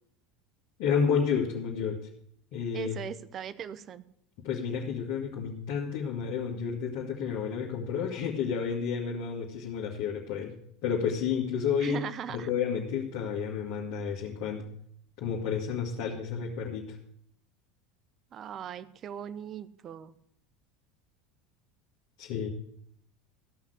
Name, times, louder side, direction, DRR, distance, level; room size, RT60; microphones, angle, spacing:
voice 1, 0.8-2.0 2.5-3.0 4.4-10.5 10.8-12.0 12.3-14.7 15.2-17.0 22.2-22.5, left 7 dB, 60° left, -3 dB, 2.0 m, -31 dB
voice 2, 2.7-4.0 11.8-12.5 18.3-20.1, right 9 dB, 40° right, 16 dB, 0.8 m, -39 dB
14.5 x 5.9 x 8.2 m, 0.68 s
hypercardioid pair, 75°, 0 cm